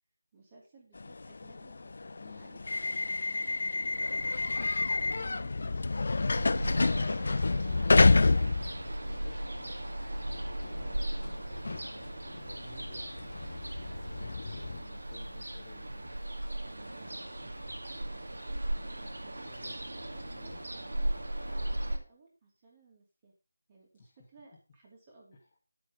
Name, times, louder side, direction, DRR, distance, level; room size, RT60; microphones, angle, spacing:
voice 1, 0.3-7.1 16.9-23.3 23.7-25.4, right 3 dB, 25° right, -2 dB, 2.9 m, -60 dB
sound 1, 0.9-9.4 9.8-14.8, left 3 dB, 50° left, 0.5 m, -29 dB
voice 2, 2.2-2.5 7.6-8.3 9.0-9.8 10.6-11.3 12.5-13.6 13.9-16.2 19.4-19.8 20.2-20.6 24.0-24.1, left 3 dB, 25° left, -2 dB, 1.9 m, -54 dB
Ocean, 6.3-22.0, right 1 dB, 75° right, 2.4 m, -37 dB
10.5 x 6.9 x 5.3 m, 0.31 s
figure-of-eight pair, 165°, 0 cm